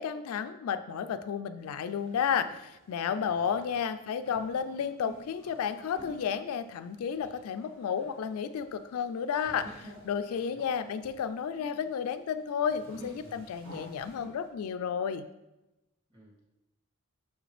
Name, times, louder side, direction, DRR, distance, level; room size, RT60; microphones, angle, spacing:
voice 1, 0.0-15.3, left 7 dB, 75° left, 11 dB, 0.3 m, -32 dB
sound 1, 1.7-14.5, right 1 dB, 60° right, 2.2 m, -52 dB
voice 2, 3.2-3.8 10.3-10.7 16.1-16.4, equal, 25° right, -5 dB, 2.2 m, -57 dB
6.4 x 5.0 x 3.3 m, 0.96 s
head